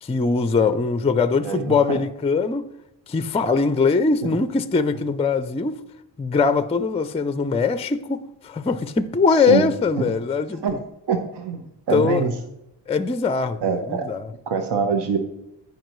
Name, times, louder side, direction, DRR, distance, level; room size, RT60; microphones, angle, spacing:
voice 1, 0.0-2.7 3.1-5.8 6.2-10.8 11.9-12.2 12.9-14.3, left 4 dB, 15° left, 0.4 m, -21 dB
voice 2, 1.4-2.0 9.3-9.7 10.6-10.8 11.1-11.6 11.9-12.4 13.6-14.1 14.5-15.2, right 5 dB, 65° right, 1.0 m, -24 dB
14.0 x 5.3 x 3.1 m
cardioid pair, 80°, 44 cm